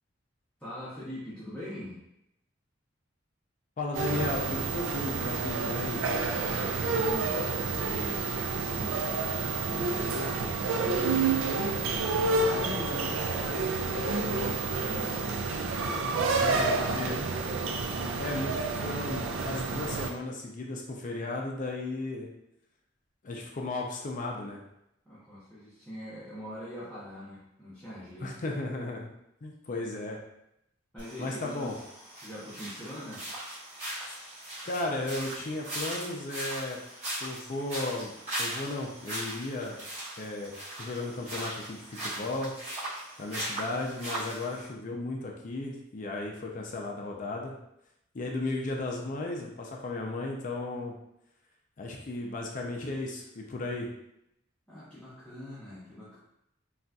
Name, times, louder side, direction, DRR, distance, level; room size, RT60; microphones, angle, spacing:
voice 1, 0.6-2.0 6.4-9.3 9.6-15.5 15.8-17.3 25.0-28.3 30.9-31.7 32.2-33.2 54.7-56.2, left 1 dB, 5° left, -12 dB, 0.8 m, -42 dB
voice 2, 3.8-6.0 16.4-16.7 16.9-17.2 18.2-22.3 23.2-24.6 28.2-29.1 29.4-30.2 31.2-31.7 34.6-36.8 37.2-38.1 38.4-39.8 40.2-40.5 40.8-42.5 43.2-47.5 48.1-51.0 51.8-53.9, left 2 dB, 40° left, 0 dB, 0.4 m, -35 dB
sound 1, 3.9-20.1, right 4 dB, 90° right, 0.4 m, -29 dB
sound 2, 31.0-44.7, right 1 dB, 35° right, 1.4 m, -39 dB
3.9 x 2.4 x 2.3 m, 0.81 s
head